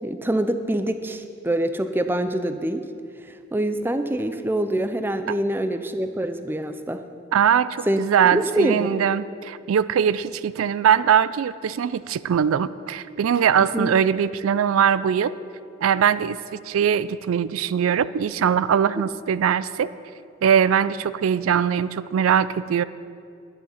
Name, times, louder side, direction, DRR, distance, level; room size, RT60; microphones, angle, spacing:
voice 1, 0.0-2.9 3.2-7.0 7.9-8.0 8.3-8.9 13.7-13.9, right 1 dB, 10° right, 9 dB, 0.5 m, -25 dB
voice 2, 7.3-15.3 15.8-19.9 20.4-22.8, right 8 dB, 80° right, 16 dB, 0.4 m, -21 dB
11.0 x 10.5 x 5.7 m, 2.3 s
head